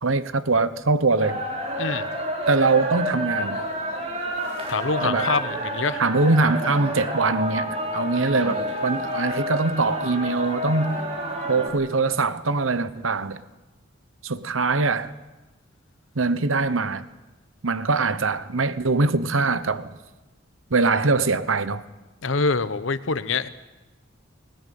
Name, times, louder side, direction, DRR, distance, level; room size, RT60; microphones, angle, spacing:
voice 1, 0.0-1.4 2.5-3.6 5.0-5.3 6.0-11.0 11.5-13.4 14.2-15.1 16.1-17.0 17.6-19.9 20.7-21.8, right 3 dB, 90° right, 1.1 m, -22 dB
sound 1, 1.2-11.7, equal, 30° right, 4.1 m, -29 dB
voice 2, 4.7-6.0 8.2-8.3 22.2-23.5, left 4 dB, 80° left, 1.0 m, -25 dB
19.5 x 19.5 x 9.4 m
head